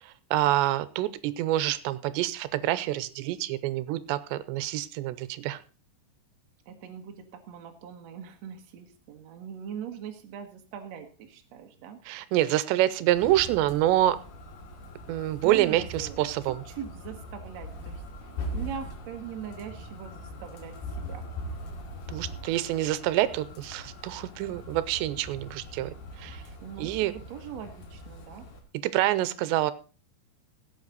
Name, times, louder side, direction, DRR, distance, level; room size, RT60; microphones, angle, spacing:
voice 1, 0.0-5.6 12.1-14.2 15.1-16.6 22.1-26.4 26.8-27.1 28.8-29.7, right 14 dB, 85° right, 15 dB, 2.9 m, -27 dB
voice 2, 6.7-12.0 15.4-16.3 16.7-21.3 26.6-28.4, right 8 dB, 60° right, 4 dB, 1.9 m, -41 dB
sound 1, 13.1-28.6, equal, 70° left, 4.1 m, -41 dB
17.0 x 8.3 x 4.0 m, 0.36 s
omnidirectional pair, 4.9 m